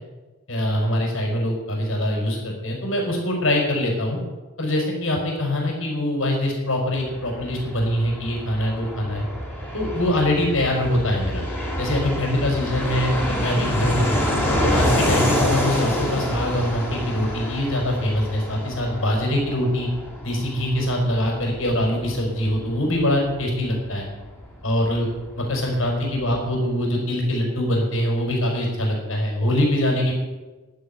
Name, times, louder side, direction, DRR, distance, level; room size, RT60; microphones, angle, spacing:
voice 1, 0.5-4.2 4.6-9.2 9.7-11.4 11.8-14.2 14.6-19.9 20.2-24.1 24.6-25.1 25.4-30.1, left 1 dB, 75° left, 0 dB, 5.3 m, -23 dB
Fixed-wing aircraft airplane, 7.0-25.3 25.6-25.7 25.9-26.6, equal, 10° left, 3.5 m, -27 dB
11.5 x 9.8 x 10.0 m, 1.2 s
head